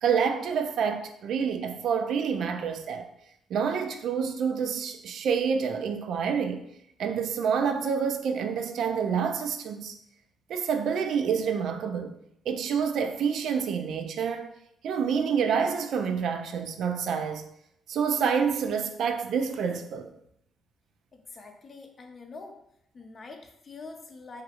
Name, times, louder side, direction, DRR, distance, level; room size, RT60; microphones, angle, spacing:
voice 1, 0.0-3.1 3.5-6.6 7.0-10.0 10.5-12.1 12.5-14.5 14.8-17.4 17.9-20.1, right 6 dB, 70° right, 7 dB, 0.3 m, -28 dB
voice 2, 21.1-22.6 22.9-24.4, left 3 dB, 45° left, 4 dB, 0.5 m, -45 dB
3.0 x 2.4 x 2.9 m, 0.75 s
cardioid pair, 90°, 0 cm